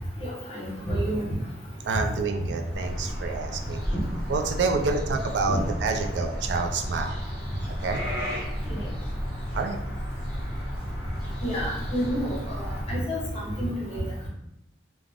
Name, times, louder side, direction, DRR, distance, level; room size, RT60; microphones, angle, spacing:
voice 1, 0.2-1.3 5.5-5.6 8.7-8.8 11.4-14.0, equal, 35° left, -5 dB, 1.0 m, -29 dB
voice 2, 1.8-3.8 4.3-7.2 7.8-8.0 9.5-9.8, right 4 dB, 80° right, 4 dB, 0.3 m, -28 dB
sound 1, 2.7-12.8, equal, 30° right, 1.1 m, -33 dB
2.4 x 2.0 x 3.3 m, 0.84 s
head